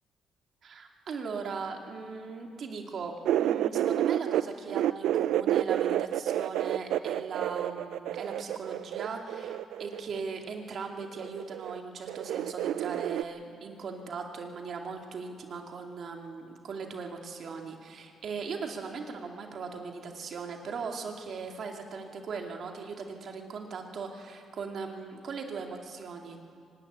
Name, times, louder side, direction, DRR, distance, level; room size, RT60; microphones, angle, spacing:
voice 1, 0.6-26.4, right 5 dB, 60° right, 3 dB, 2.3 m, -39 dB
sound 1, 3.2-4.4 4.7-10.2 11.2-11.8 12.1-13.2, right 12 dB, 85° right, 0.4 m, -29 dB
24.0 x 11.5 x 9.7 m, 2.3 s
cardioid pair, 90°, 0 cm